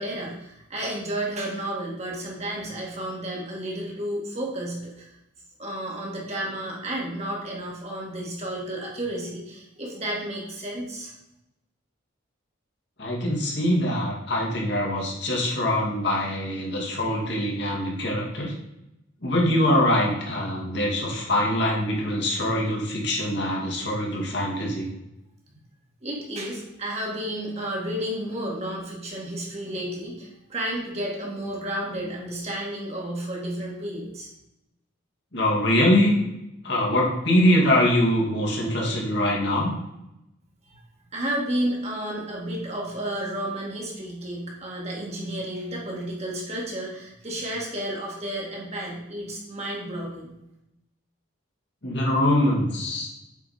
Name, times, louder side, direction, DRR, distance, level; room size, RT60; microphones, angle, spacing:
voice 1, 0.0-5.1 5.6-11.1 26.0-34.3 40.6-40.8 41.1-50.3, right 1 dB, 30° right, -3 dB, 2.0 m, -32 dB
voice 2, 13.0-18.5 19.2-24.9 35.3-36.2 36.6-39.7 51.8-53.1, left 1 dB, 55° left, -2 dB, 2.2 m, -23 dB
8.3 x 5.1 x 4.3 m, 0.88 s
head